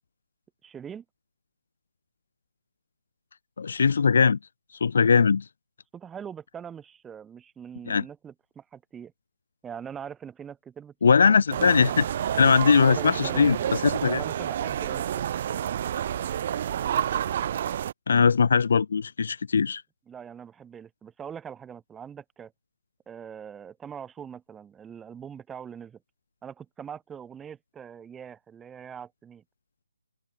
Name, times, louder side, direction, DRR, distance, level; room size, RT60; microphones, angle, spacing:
voice 1, 0.6-1.0 5.9-9.1 9.6-10.9 11.2-11.8 12.6-13.7 14.0-15.3 20.1-22.5 23.1-26.0 26.4-29.4, right 8 dB, 10° right, 1.8 m, -42 dB
voice 2, 3.6-4.4 4.8-5.4 7.9-8.0 11.0-12.0 12.3-14.2 18.1-19.8, left 5 dB, 50° left, 0.7 m, -20 dB
sound 1, 11.5-17.9, right 10 dB, 35° right, 1.2 m, -29 dB
figure-of-eight pair, 145°, 0 cm